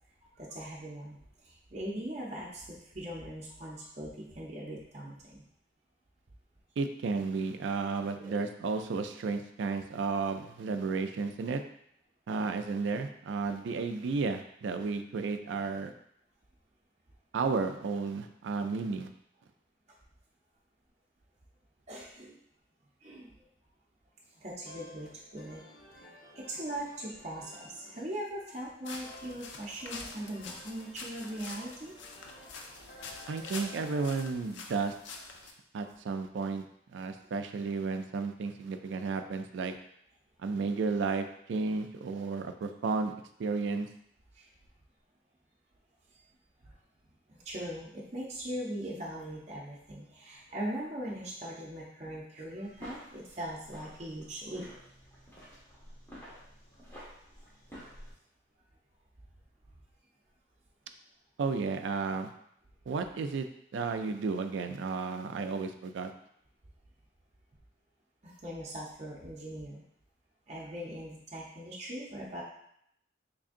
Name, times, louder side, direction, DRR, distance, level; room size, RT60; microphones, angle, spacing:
voice 1, 0.4-5.4 8.2-8.4 21.9-22.4 23.0-23.4 24.4-25.6 25.9-31.9 32.4-33.2 35.8-35.9 37.2-37.3 44.3-44.5 46.6-46.8 47.3-54.7 68.2-69.8 70.5-72.4, right 1 dB, 35° right, -5 dB, 0.6 m, -40 dB
voice 2, 6.8-11.6 12.3-15.9 17.3-19.1 33.3-34.9 35.7-36.6 36.9-39.8 40.4-43.1 43.4-43.9 61.4-62.3 62.9-63.5 63.7-66.1, right 4 dB, 85° right, 7 dB, 0.3 m, -33 dB
sound 1, 24.3-34.2, left 1 dB, 55° left, 0.8 m, -53 dB
sound 2, 28.8-35.5, left 4 dB, 90° left, 0.5 m, -46 dB
sound 3, 52.6-58.1, equal, 15° left, 1.0 m, -51 dB
3.7 x 3.3 x 2.5 m, 0.72 s
head